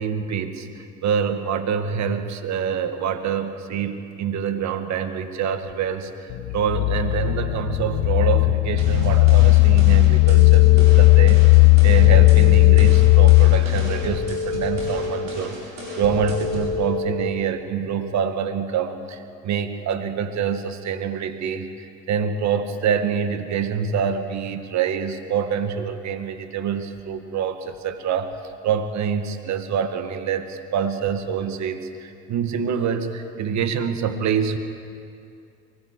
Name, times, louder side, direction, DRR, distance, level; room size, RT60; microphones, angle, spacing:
voice 1, 0.0-15.6 16.0-28.3 28.6-34.6, right 7 dB, 55° right, 8 dB, 1.8 m, -26 dB
sound 1, 6.3-14.1, left 25 dB, 60° left, 0.6 m, -15 dB
sound 2, 8.8-16.8, right 1 dB, 90° right, 7.6 m, -35 dB
sound 3, 10.2-17.6, left 4 dB, 80° left, 2.9 m, -30 dB
23.0 x 19.5 x 8.4 m, 2.5 s
hypercardioid pair, 65°, 34 cm